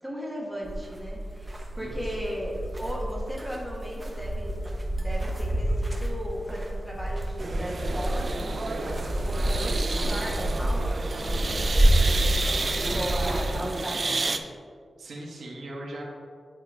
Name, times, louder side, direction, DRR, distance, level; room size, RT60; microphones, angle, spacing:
voice 1, 0.0-4.6 4.9-11.6 12.1-14.2, equal, ahead, -4 dB, 1.2 m, -36 dB
sound 1, 0.6-13.5, right 1 dB, 15° right, 0.8 m, -28 dB
sound 2, 7.4-14.4, right 3 dB, 35° right, 0.4 m, -31 dB
voice 2, 12.4-13.0 15.0-16.0, right 1 dB, 90° right, -2 dB, 1.3 m, -40 dB
9.1 x 5.0 x 3.3 m, 2.1 s
wide cardioid pair, 170°, 0 cm